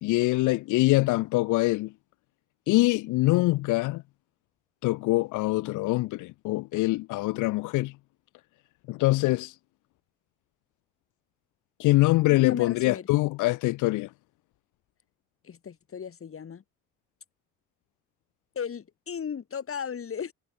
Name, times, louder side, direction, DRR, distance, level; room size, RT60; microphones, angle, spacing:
voice 1, 0.0-1.9 2.7-4.0 4.8-7.9 8.9-9.5 11.8-14.1, left 20 dB, 85° left, 0.5 m, -24 dB
voice 2, 12.3-13.1 15.4-16.6 18.6-20.3, left 7 dB, 45° left, 3.7 m, -36 dB
cardioid pair, 90°, 30 cm